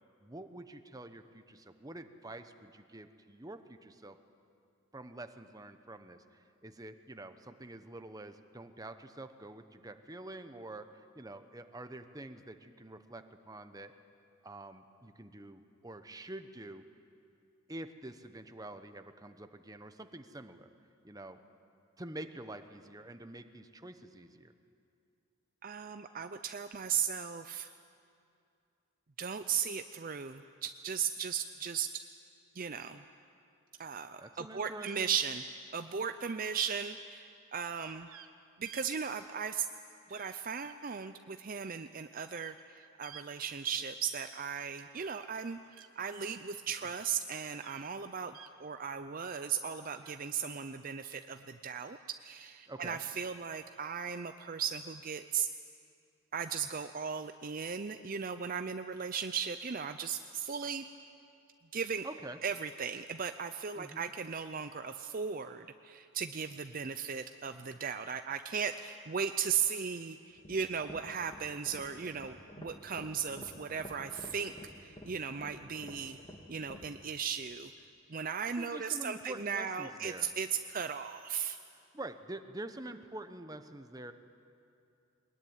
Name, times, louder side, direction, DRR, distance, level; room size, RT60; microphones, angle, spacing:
voice 1, 0.2-4.2 4.9-13.9 14.4-16.8 17.7-20.7 21.0-21.4 22.0-24.5 34.2-35.2 46.8-46.9 52.7-53.0 62.0-62.4 63.8-64.0 78.6-80.3 81.9-84.1, right 1 dB, 15° right, 8 dB, 0.9 m, -47 dB
voice 2, 25.6-27.7 29.2-31.9 32.5-33.0 33.8-35.4 35.7-38.1 38.6-39.7 40.1-45.6 46.0-55.5 56.3-60.8 61.7-62.1 62.4-74.5 74.8-76.2 76.5-77.7 78.1-81.6, right 7 dB, 40° right, 9 dB, 0.5 m, -37 dB
sound 1, 36.2-36.7 38.1-38.3 38.6-38.9 40.1-40.3 40.6-40.7 42.3-42.6 43.0-43.3 44.9-45.9 47.6-47.9 48.3-48.5 50.0-50.2, right 10 dB, 75° right, 1.1 m, -53 dB
sound 2, 70.3-76.9, equal, 25° left, 2.2 m, -50 dB
22.0 x 21.0 x 9.5 m, 2.5 s
head